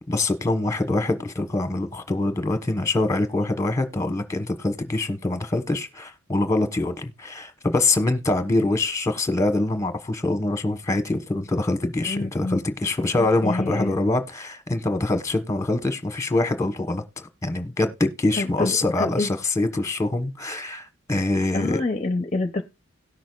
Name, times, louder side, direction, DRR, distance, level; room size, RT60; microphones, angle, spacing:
voice 1, 0.0-21.8, left 2 dB, 15° left, 1.1 m, -24 dB
voice 2, 12.1-12.6 13.2-14.0 18.4-19.3 21.5-22.6, left 2 dB, 30° left, 0.7 m, -27 dB
18.0 x 6.2 x 2.4 m
head